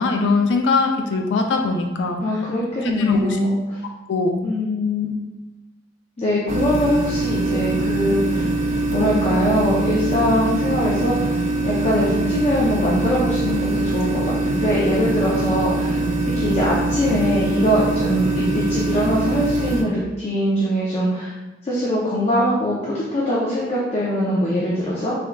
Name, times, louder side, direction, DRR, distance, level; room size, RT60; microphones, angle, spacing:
voice 1, 0.0-2.2 2.8-3.4 4.1-4.4, left 3 dB, 85° left, 3 dB, 0.4 m, -21 dB
voice 2, 2.2-3.6 4.4-5.1 6.2-8.4 8.9-11.3 11.6-16.0 16.4-21.3 21.6-25.1, equal, 35° left, -7 dB, 0.5 m, -22 dB
sound 1, 6.5-19.8, right 2 dB, 40° right, 0.3 m, -23 dB
3.5 x 3.4 x 2.2 m, 1.1 s
head